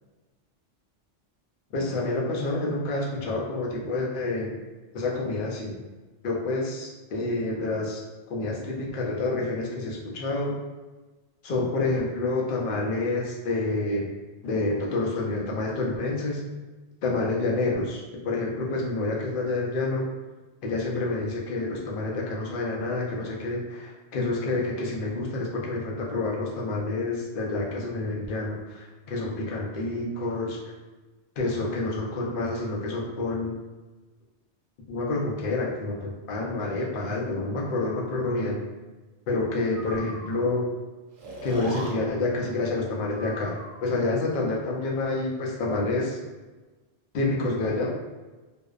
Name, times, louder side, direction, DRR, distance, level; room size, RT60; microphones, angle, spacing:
voice 1, 1.7-4.6 4.9-5.8 6.2-8.0 8.3-10.6 11.4-14.1 14.4-16.4 17.0-20.1 20.6-30.6 31.4-33.6 34.9-38.6 39.3-40.7 41.4-46.2 47.1-47.9, left 2 dB, 60° left, -2 dB, 0.6 m, -28 dB
Breathing, 39.7-40.4 41.2-41.9 43.1-43.9, right 1 dB, 85° right, 1.0 m, -39 dB
2.7 x 2.0 x 2.3 m, 1.2 s
omnidirectional pair, 1.2 m